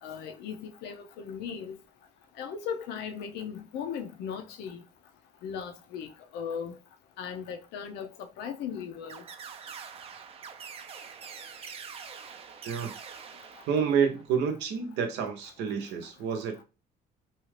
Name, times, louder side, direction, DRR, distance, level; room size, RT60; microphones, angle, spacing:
voice 1, 0.0-1.8 2.4-4.8 5.4-6.8 7.2-9.2, left 7 dB, 85° left, 0.6 m, -37 dB
sound 1, 9.1-14.3, right 6 dB, 35° right, 0.4 m, -45 dB
voice 2, 12.6-12.9 13.7-16.6, right 7 dB, 90° right, 0.7 m, -29 dB
2.7 x 2.3 x 3.1 m
cardioid pair, 110°, 17 cm